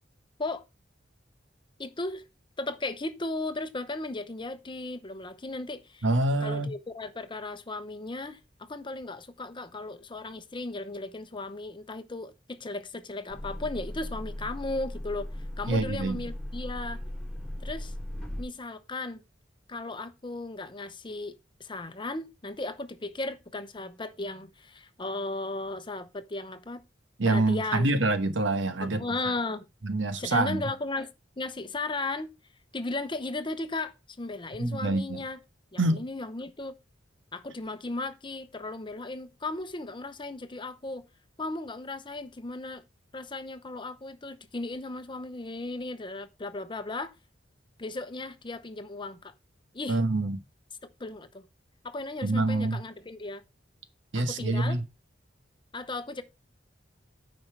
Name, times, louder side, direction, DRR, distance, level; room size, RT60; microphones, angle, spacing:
voice 1, 1.8-2.2 2.6-6.1 6.4-15.3 15.6-17.0 17.6-17.9 18.4-19.2 19.7-26.8 27.3-27.9 28.8-29.7 30.2-32.3 32.7-35.4 35.7-36.8 37.3-41.0 41.4-42.8 43.1-47.1 47.8-49.3 49.7-50.0 51.0-51.4 51.8-53.4 54.1-54.8 55.7-56.2, left 2 dB, 25° left, 0.9 m, -36 dB
voice 2, 6.0-6.7 15.7-16.3 27.2-29.0 29.8-30.6 34.6-35.2 35.8-36.0 49.9-50.4 52.2-52.8 54.1-54.8, right 2 dB, 90° right, 1.1 m, -26 dB
sound 1, 13.3-18.4, left 1 dB, 5° left, 4.4 m, -37 dB
9.5 x 5.4 x 4.6 m
head